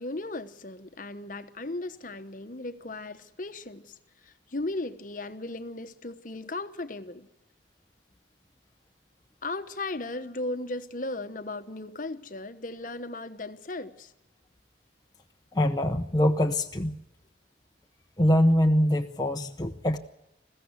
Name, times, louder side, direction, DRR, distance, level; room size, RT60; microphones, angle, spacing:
voice 1, 0.0-3.9 4.2-7.3 9.4-14.1, left 2 dB, 45° left, 1.1 m, -36 dB
voice 2, 15.5-17.0 18.2-20.0, left 1 dB, 20° left, 0.8 m, -23 dB
21.5 x 15.5 x 9.6 m
head